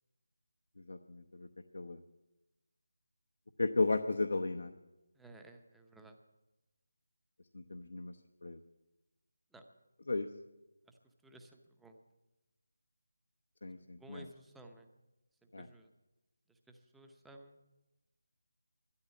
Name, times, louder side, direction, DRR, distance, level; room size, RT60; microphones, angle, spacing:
voice 1, 0.9-1.5 1.7-2.0 3.6-4.7 7.5-8.2 8.4-8.6 10.1-10.3 13.6-14.2 15.5-15.7, left 3 dB, 75° left, 5 dB, 0.9 m, -34 dB
voice 2, 5.1-6.2 9.5-9.6 10.9-12.0 13.9-14.9 15.4-15.9 16.5-17.6, right 2 dB, 5° right, 4 dB, 0.8 m, -56 dB
12.5 x 11.0 x 8.4 m, 1.0 s
figure-of-eight pair, 170°, 0 cm